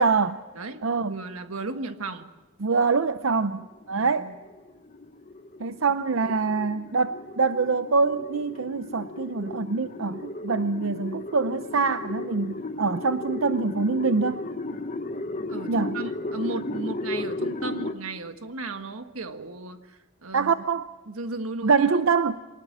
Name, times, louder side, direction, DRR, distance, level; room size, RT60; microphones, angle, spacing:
voice 1, 0.0-0.4 0.8-1.2 2.6-4.3 5.6-14.4 15.7-16.0 20.3-20.8 21.6-22.4, right 4 dB, 70° right, 11 dB, 0.7 m, -24 dB
voice 2, 0.5-2.3 3.9-4.4 6.2-6.4 14.7-14.8 15.5-20.5 21.1-21.9, right 3 dB, 85° right, 8 dB, 1.6 m, -35 dB
sound 1, 3.6-17.9, left 2 dB, 35° left, 1.1 m, -35 dB
24.0 x 19.5 x 7.4 m, 1.2 s
head